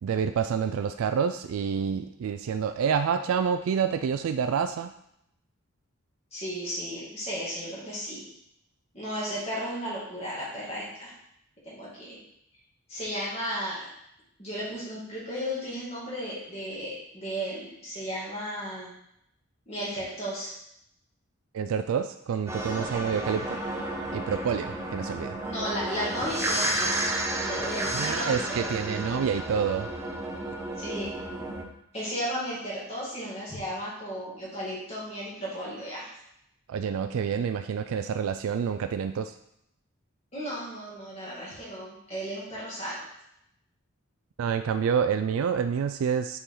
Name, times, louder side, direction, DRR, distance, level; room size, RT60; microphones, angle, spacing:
voice 1, 0.0-4.9 21.5-23.6 24.1-25.4 27.9-29.9 36.7-39.4 44.4-46.4, right 7 dB, 75° right, 8 dB, 0.3 m, -28 dB
voice 2, 6.3-8.2 8.9-11.1 11.6-12.2 12.9-13.9 14.4-18.9 19.7-20.5 25.4-26.9 27.4-28.7 30.8-31.1 31.9-36.1 40.3-43.1, equal, 30° left, -7 dB, 2.4 m, -34 dB
sound 1, 22.5-31.6, right 1 dB, 10° right, 0.6 m, -32 dB
6.7 x 4.6 x 3.8 m, 0.77 s
head